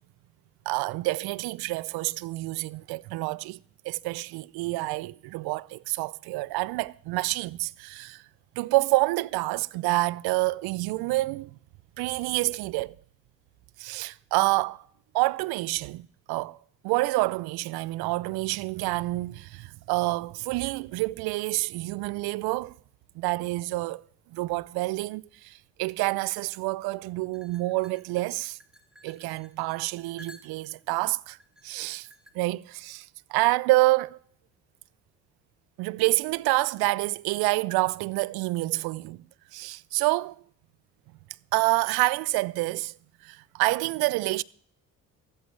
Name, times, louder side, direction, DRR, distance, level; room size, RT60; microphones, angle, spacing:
voice 1, 0.7-3.6 3.8-8.2 8.6-11.5 12.0-13.0 13.8-14.8 15.1-16.6 16.8-22.7 23.2-24.0 24.3-28.6 29.0-31.4 31.6-32.1 32.3-34.2 35.8-39.2 39.5-40.4 41.5-42.9 43.2-44.4, right 21 dB, 65° right, 0.5 m, -28 dB
sound 1, 27.3-30.8 31.4-32.3, left 1 dB, ahead, 1.8 m, -53 dB
14.0 x 13.0 x 3.2 m
hypercardioid pair, 50°, 40 cm